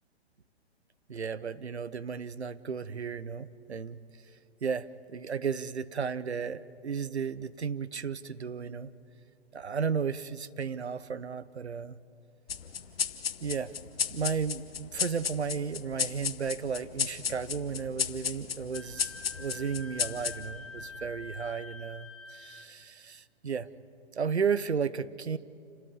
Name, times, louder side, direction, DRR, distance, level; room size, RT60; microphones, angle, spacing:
voice 1, 1.1-4.0 4.6-8.9 9.5-11.9 13.4-13.7 14.1-23.7 24.1-25.4, right 6 dB, 80° right, 16 dB, 0.9 m, -34 dB
sound 1, 12.5-21.4, left 7 dB, 65° left, 1.1 m, -35 dB
Wind instrument woodwind instrument, 18.7-22.7, left 3 dB, ahead, 0.9 m, -46 dB
28.5 x 13.0 x 9.9 m, 2.5 s
figure-of-eight pair, 125°, 33 cm